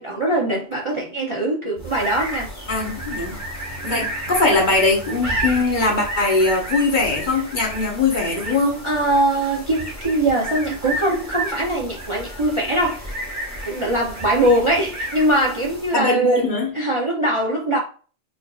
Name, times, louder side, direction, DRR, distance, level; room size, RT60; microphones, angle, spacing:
voice 1, 0.0-2.5 3.8-4.1 8.8-13.2 13.7-16.4 16.7-17.8, right 1 dB, 35° right, 0.5 m, -21 dB
sound 1, 1.8-16.1, right 1 dB, 15° right, 1.0 m, -31 dB
voice 2, 2.7-3.4 3.8-8.8 15.9-16.7, left 3 dB, 45° left, 0.9 m, -20 dB
4.7 x 2.5 x 2.3 m
omnidirectional pair, 1.2 m